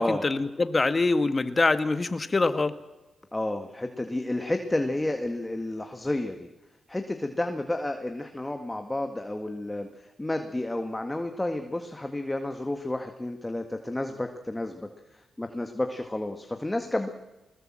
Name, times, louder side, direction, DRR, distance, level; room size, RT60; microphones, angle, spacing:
voice 1, 0.0-2.7, left 3 dB, 35° left, 11 dB, 1.6 m, -24 dB
voice 2, 3.3-6.5 6.9-17.1, left 1 dB, 15° left, 6 dB, 1.9 m, -31 dB
20.5 x 20.0 x 7.7 m, 1.1 s
supercardioid pair, 55°, 0 cm